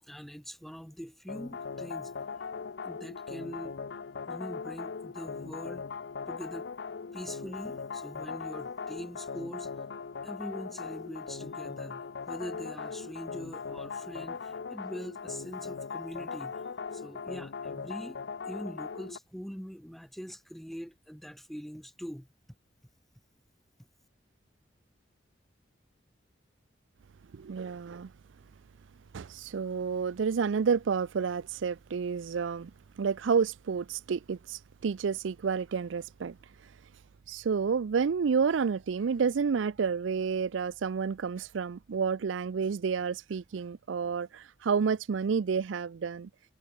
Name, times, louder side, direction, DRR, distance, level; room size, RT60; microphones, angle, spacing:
voice 1, 0.0-2.1 2.8-3.8 4.3-5.9 6.3-6.7 7.1-9.7 10.2-16.6 16.9-18.2 18.4-22.3, equal, ahead, 1.5 m, -43 dB
sound 1, 1.3-19.2, left 5 dB, 65° left, 0.5 m, -39 dB
voice 2, 27.3-28.1 29.1-32.7 33.0-36.4 37.3-46.3, right 6 dB, 85° right, 0.4 m, -30 dB
head